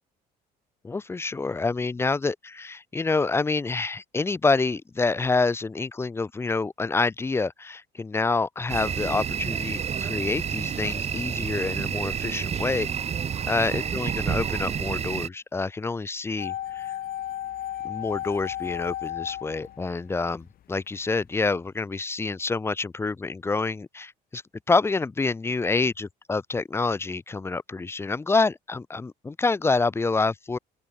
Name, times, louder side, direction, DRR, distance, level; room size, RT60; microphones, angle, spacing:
voice 1, 0.8-12.9 13.5-16.9 17.8-24.4 24.7-30.6, left 3 dB, 15° left, 0.5 m, -27 dB
sound 1, 8.7-15.3, right 7 dB, 40° right, 1.4 m, -29 dB
sound 2, 16.4-20.5 20.7-20.8, left 12 dB, 60° left, 1.3 m, -34 dB
open air
cardioid pair, 110°, 17 cm